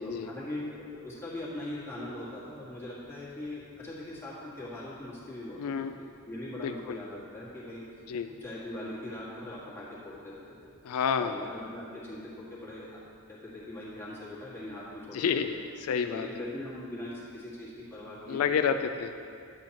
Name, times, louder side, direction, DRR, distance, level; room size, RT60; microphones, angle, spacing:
voice 1, 0.0-5.6 6.0-7.9 8.4-10.7 11.2-13.0 13.3-15.6 16.1-18.6, left 1 dB, 10° left, -8 dB, 1.7 m, -41 dB
voice 2, 5.6-5.9 6.6-7.0 8.1-8.3 10.8-11.4 15.1-15.6 15.9-16.3 18.3-19.1, left 7 dB, 80° left, 8 dB, 0.3 m, -29 dB
10.0 x 8.4 x 2.9 m, 2.4 s
head